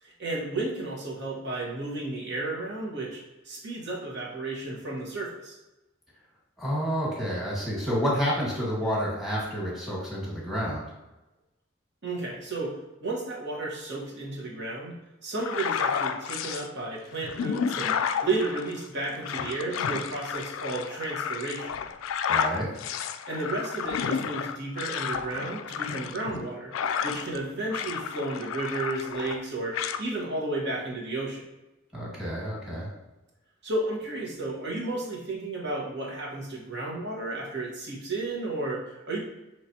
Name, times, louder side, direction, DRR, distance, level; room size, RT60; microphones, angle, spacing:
voice 1, 0.0-5.6 12.0-14.9 15.2-21.8 23.3-26.7 27.0-31.4 33.6-39.2, right 2 dB, 60° right, -3 dB, 1.2 m, -33 dB
voice 2, 6.6-10.8 22.3-22.7 31.9-32.9, equal, ahead, -5 dB, 1.5 m, -29 dB
sound 1, 15.4-16.7 17.2-27.4 27.7-29.4 29.7-30.0, left 7 dB, 90° left, 0.3 m, -31 dB
5.8 x 3.2 x 2.8 m, 1.0 s
head